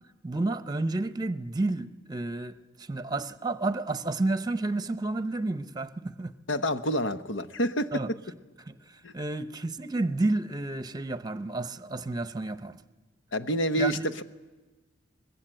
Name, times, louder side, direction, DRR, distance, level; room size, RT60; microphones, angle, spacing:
voice 1, 0.2-6.4 7.9-8.1 8.6-12.8 13.8-14.0, right 2 dB, 20° right, 0.9 m, -31 dB
voice 2, 6.5-7.9 9.0-9.1 13.3-14.2, equal, 75° left, 1.1 m, -28 dB
24.0 x 21.0 x 9.0 m
head